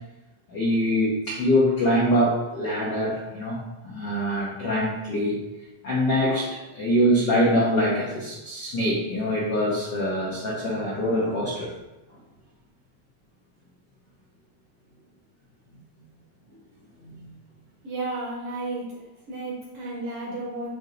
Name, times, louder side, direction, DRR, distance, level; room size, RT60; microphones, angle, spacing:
voice 1, 0.5-5.4 5.8-11.7 17.0-17.3, equal, 85° left, -5 dB, 0.9 m, -24 dB
voice 2, 17.8-18.9 19.3-20.7, right 2 dB, 65° right, -4 dB, 1.5 m, -32 dB
8.5 x 2.9 x 3.8 m, 1.0 s
omnidirectional pair, 3.6 m